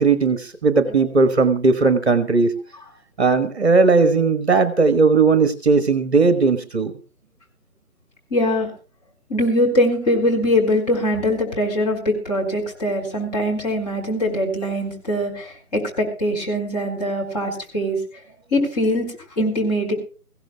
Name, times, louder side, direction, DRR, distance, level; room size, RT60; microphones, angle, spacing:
voice 1, 0.0-2.5 3.2-6.9, right 4 dB, 45° right, 11 dB, 1.4 m, -17 dB
voice 2, 8.3-8.7 9.3-18.0 18.5-19.1 19.4-19.9, left 1 dB, 25° left, -1 dB, 5.0 m, -22 dB
23.5 x 16.0 x 2.3 m, 0.38 s
figure-of-eight pair, 155°, 46 cm